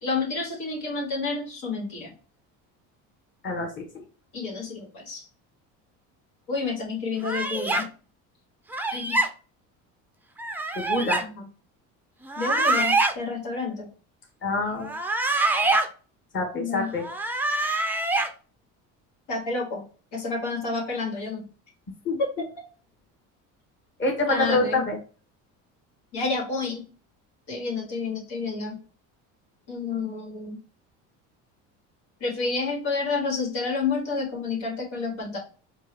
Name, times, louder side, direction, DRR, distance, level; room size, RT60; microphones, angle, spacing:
voice 1, 0.0-2.1 4.3-5.2 6.5-7.9 8.9-9.2 11.2-11.3 12.4-13.9 16.5-16.9 19.3-19.8 20.1-21.4 22.2-22.5 24.3-24.9 26.1-26.8 27.5-28.8 29.7-30.6 32.2-35.4, left 4 dB, 75° left, -2 dB, 1.8 m, -29 dB
voice 2, 3.4-4.0 10.7-11.2 14.4-14.9 16.3-17.1 22.0-22.2 24.0-25.0, left 2 dB, 30° left, 1 dB, 1.3 m, -26 dB
sound 1, 7.2-7.8 8.7-9.3 10.4-11.2 12.2-13.1 14.8-15.9 17.0-18.3, right 2 dB, 5° right, 0.4 m, -25 dB
4.5 x 2.4 x 3.3 m, 0.37 s
supercardioid pair, 85°, 37 cm